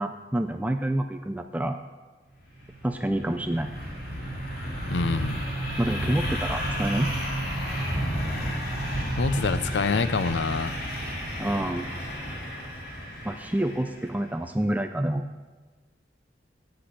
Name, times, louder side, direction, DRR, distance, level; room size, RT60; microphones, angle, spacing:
voice 1, 0.0-1.8 2.8-3.7 5.8-7.1 11.4-11.9 13.2-15.2, right 1 dB, 10° right, 7 dB, 0.4 m, -27 dB
sound 1, 2.4-14.1, equal, 60° left, 2.4 m, -31 dB
voice 2, 4.9-5.4 9.2-10.8, left 4 dB, 85° left, 13 dB, 0.6 m, -26 dB
8.6 x 7.7 x 8.2 m, 1.3 s
head